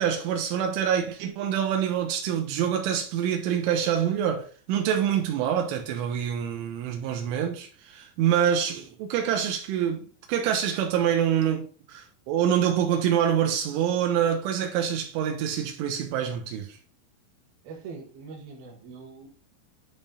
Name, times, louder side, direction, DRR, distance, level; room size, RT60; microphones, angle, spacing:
voice 1, 0.0-16.8, right 9 dB, 85° right, 3.2 m, -26 dB
voice 2, 17.6-19.3, right 4 dB, 60° right, 3.1 m, -42 dB
10.0 x 3.7 x 3.9 m
omnidirectional pair, 5.6 m